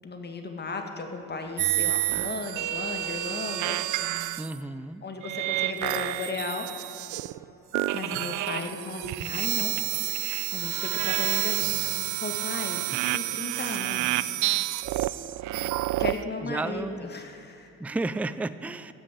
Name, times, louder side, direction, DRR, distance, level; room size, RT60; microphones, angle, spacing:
voice 1, 0.0-4.3 5.0-6.7 7.9-9.8 10.0-14.4 16.0-17.7, left 3 dB, 35° left, 4 dB, 1.9 m, -36 dB
sound 1, 1.6-4.6 5.2-7.4 7.7-16.2, right 16 dB, 85° right, 0.5 m, -29 dB
voice 2, 4.4-5.0 16.4-17.1 17.8-18.9, right 2 dB, 5° right, 14 dB, 0.4 m, -32 dB
14.5 x 6.3 x 9.1 m, 3.0 s
cardioid pair, 90°, 30 cm